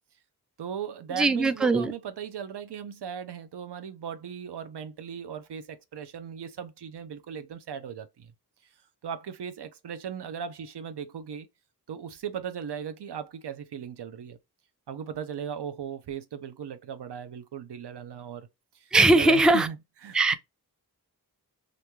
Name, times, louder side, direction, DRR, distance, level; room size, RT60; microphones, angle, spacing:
voice 1, 0.6-8.3 9.0-11.5 11.9-14.4 14.9-18.5 18.7-20.3, right 8 dB, 85° right, 0.5 m, -37 dB
voice 2, 1.1-1.9 18.9-19.7 20.1-20.3, right 2 dB, ahead, 0.3 m, -20 dB
2.5 x 2.3 x 2.9 m
wide cardioid pair, 45°, 39 cm